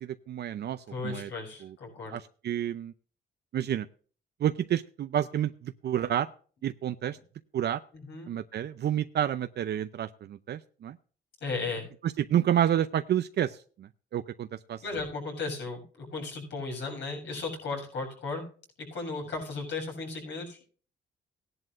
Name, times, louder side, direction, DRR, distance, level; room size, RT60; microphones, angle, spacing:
voice 1, 0.0-1.3 2.1-2.9 3.5-3.9 4.4-6.3 6.6-7.2 7.5-7.8 8.3-11.0 12.3-14.8, right 10 dB, 60° right, 10 dB, 0.6 m, -29 dB
voice 2, 0.9-2.2 7.9-8.3 11.4-11.9 14.8-18.4 18.8-20.7, left 3 dB, 70° left, 1 dB, 7.3 m, -35 dB
17.5 x 11.0 x 2.6 m, 0.41 s
cardioid pair, 105°, 19 cm